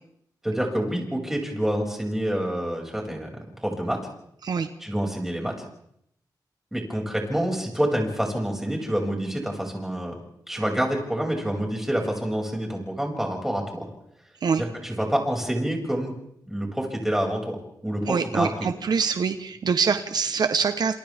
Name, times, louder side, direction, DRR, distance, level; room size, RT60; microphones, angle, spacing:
voice 1, 0.4-3.3 3.6-4.0 4.8-5.6 6.7-10.1 10.5-13.8 14.6-16.1 16.5-17.6 17.8-18.5, right 1 dB, 5° right, 0 dB, 6.6 m, -27 dB
voice 2, 18.1-20.9, right 5 dB, 70° right, 9 dB, 1.1 m, -24 dB
29.0 x 28.0 x 3.6 m, 0.72 s
wide cardioid pair, 105°, 7 cm